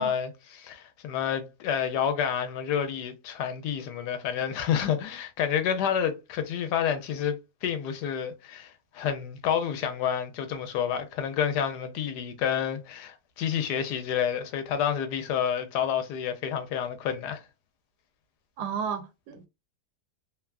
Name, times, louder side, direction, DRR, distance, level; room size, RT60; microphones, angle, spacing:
voice 1, 0.0-17.4, left 8 dB, 80° left, 1.2 m, -29 dB
voice 2, 18.6-19.5, right 7 dB, 80° right, 1.2 m, -33 dB
3.0 x 2.3 x 2.3 m
omnidirectional pair, 1.8 m